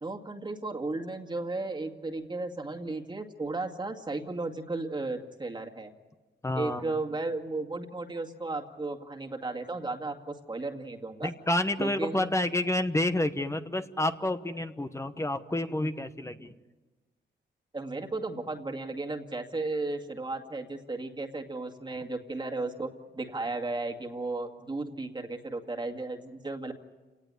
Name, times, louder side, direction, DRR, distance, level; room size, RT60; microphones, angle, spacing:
voice 1, 0.0-5.9 6.6-11.3 11.8-12.3 17.7-26.7, right 2 dB, 25° right, 2 dB, 2.2 m, -35 dB
voice 2, 6.4-6.9 11.2-16.5, left 1 dB, 15° left, 8 dB, 1.2 m, -29 dB
30.0 x 18.5 x 9.9 m, 1.2 s
cardioid pair, 105°, 19 cm